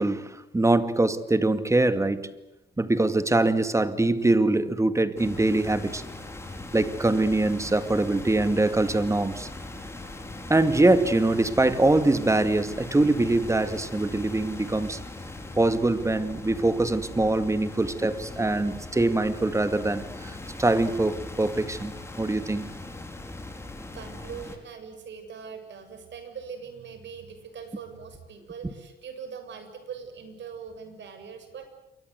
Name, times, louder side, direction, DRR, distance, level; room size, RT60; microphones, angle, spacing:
voice 1, 0.0-2.3 2.8-6.0 6.7-9.5 10.5-15.0 15.6-22.7, right 2 dB, 15° right, 2.2 m, -23 dB
sound 1, 5.2-24.6, left 2 dB, 15° left, 5.0 m, -40 dB
voice 2, 23.9-31.7, right 6 dB, 65° right, 7.1 m, -41 dB
28.0 x 24.5 x 8.2 m
cardioid pair, 90°, 20 cm